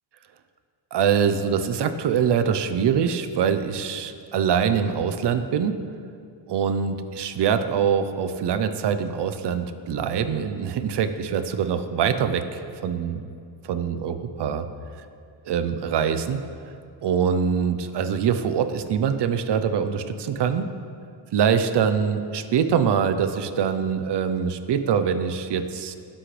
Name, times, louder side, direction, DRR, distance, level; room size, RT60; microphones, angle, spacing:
voice 1, 0.9-5.8 6.5-13.3 13.6-14.7 15.5-16.4 17.0-20.0 20.4-20.7 21.3-26.0, right 7 dB, 55° right, 9 dB, 0.8 m, -24 dB
18.0 x 7.8 x 3.4 m, 2.4 s
cardioid pair, 115°, 50 cm